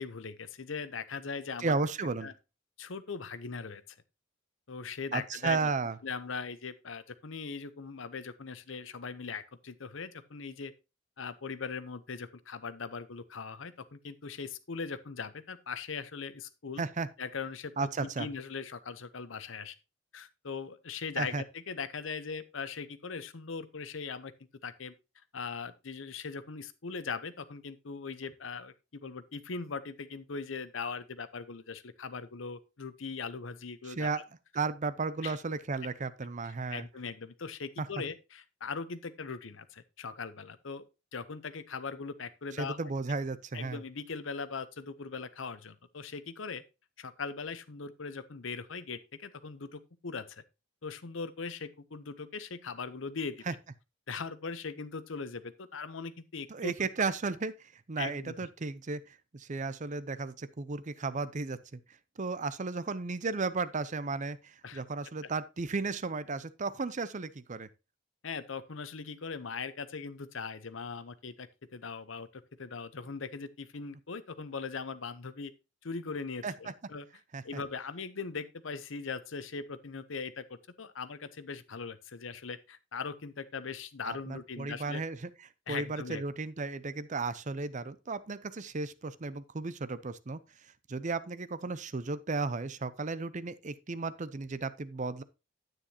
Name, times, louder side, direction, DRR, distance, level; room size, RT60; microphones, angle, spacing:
voice 1, 0.0-1.8 2.2-2.3 2.8-3.8 4.7-5.7 6.0-10.7 11.2-16.8 17.2-19.8 20.1-24.3 24.6-24.9 25.3-34.2 35.2-35.4 36.4-40.9 41.1-42.8 43.5-46.6 47.0-50.4 50.8-53.4 54.1-56.7 58.0-58.3 64.6-64.8 65.2-65.3 68.2-75.5 75.8-77.1 77.4-85.0 85.7-86.2, left 5 dB, 75° left, 0.8 m, -40 dB
voice 2, 1.6-2.3 5.1-6.0 16.8-17.1 17.8-18.3 21.2-21.4 33.9-34.2 34.5-36.8 37.8-37.9 42.6-43.8 53.5-53.6 56.5-59.0 59.3-61.8 62.2-67.7 76.4-76.5 77.3-77.4 84.1-85.3 85.7-90.4 90.9-95.2, right 4 dB, 40° right, 0.6 m, -34 dB
9.9 x 9.0 x 2.9 m
head